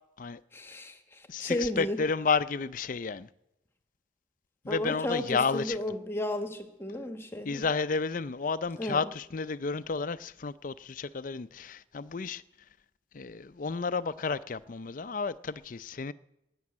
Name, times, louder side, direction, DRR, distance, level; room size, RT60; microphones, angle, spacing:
voice 1, 0.5-2.0 4.7-7.6 8.8-9.0, left 1 dB, 15° left, 1.3 m, -33 dB
voice 2, 1.3-3.3 4.6-5.8 7.4-12.4 13.1-16.1, left 5 dB, 45° left, 0.5 m, -31 dB
14.0 x 9.6 x 8.7 m
head